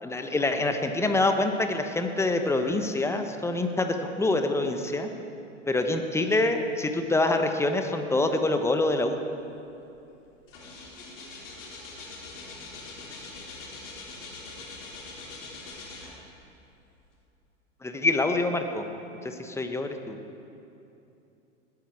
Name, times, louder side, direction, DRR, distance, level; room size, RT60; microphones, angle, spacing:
voice 1, 0.0-5.1 5.7-9.2 17.8-18.8 19.2-20.2, left 2 dB, 5° left, 6 dB, 1.0 m, -26 dB
sound 1, 9.7-9.9 10.2-16.5 17.0-17.1, left 3 dB, 65° left, 3.5 m, -43 dB
20.0 x 9.7 x 4.8 m, 2.7 s
hypercardioid pair, 100°, 39 cm